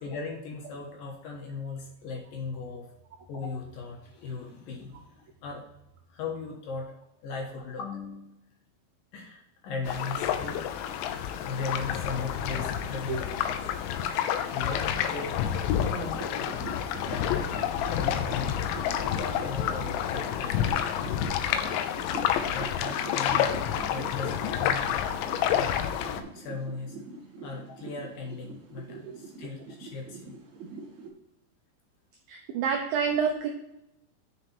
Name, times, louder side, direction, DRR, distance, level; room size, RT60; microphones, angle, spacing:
voice 1, 0.0-2.9 3.3-5.6 6.1-6.9 7.2-8.4 9.1-10.6 11.4-13.6 14.5-15.4 15.8-16.8 17.1-17.6 17.9-21.2 22.5-23.6 23.9-25.0 25.5-26.0 26.3-27.0 27.4-30.4, left 4 dB, 65° left, 1 dB, 2.5 m, -38 dB
sound 1, 9.9-26.2, left 9 dB, 85° left, 2.9 m, -29 dB
sound 2, 16.0-31.1, right 3 dB, 55° right, 2.3 m, -43 dB
voice 2, 32.3-33.5, right 6 dB, 90° right, 2 dB, 2.0 m, -28 dB
9.5 x 4.9 x 4.4 m, 0.86 s
omnidirectional pair, 5.2 m